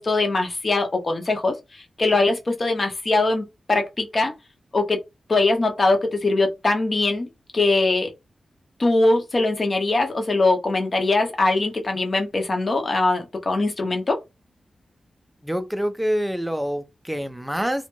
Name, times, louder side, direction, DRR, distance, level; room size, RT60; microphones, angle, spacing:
voice 1, 0.0-4.3 4.7-5.0 5.3-8.1 8.8-14.2, left 2 dB, 35° left, 0.7 m, -22 dB
voice 2, 15.4-17.9, equal, 5° right, 0.4 m, -26 dB
2.5 x 2.2 x 3.0 m
wide cardioid pair, 140°, 0 cm